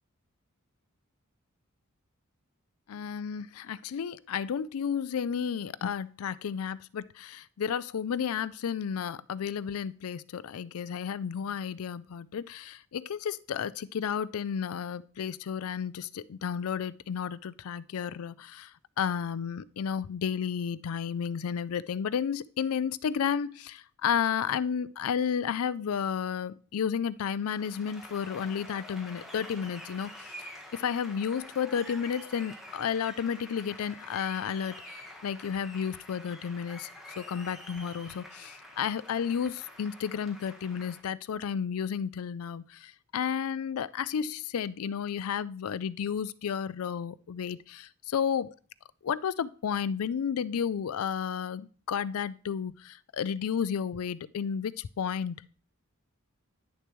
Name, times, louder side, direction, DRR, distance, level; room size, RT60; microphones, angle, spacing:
voice 1, 2.9-36.9 37.2-48.5 49.0-55.5, left 7 dB, 75° left, 0.4 m, -32 dB
Applause, 27.4-41.0, left 1 dB, ahead, 1.2 m, -47 dB
9.9 x 6.7 x 3.1 m
head